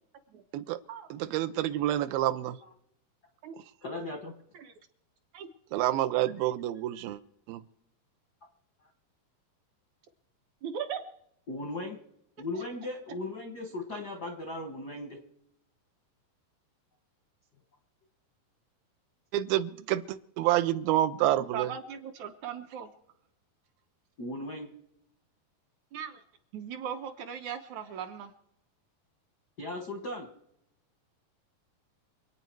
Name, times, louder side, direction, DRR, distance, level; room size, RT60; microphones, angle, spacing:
voice 1, 1.1-2.6 5.7-7.2 7.5-7.6 19.3-21.7, right 13 dB, 85° right, 13 dB, 2.5 m, -28 dB
voice 2, 3.8-4.4 11.5-12.0 12.4-15.2 24.2-24.7 29.6-30.3, left 2 dB, 65° left, 4 dB, 0.9 m, -37 dB
voice 3, 10.6-11.0 12.6-12.7 21.5-22.9 25.9-26.2 26.5-28.3, right 8 dB, 70° right, 6 dB, 1.9 m, -38 dB
27.0 x 9.1 x 4.6 m, 0.78 s
omnidirectional pair, 4.1 m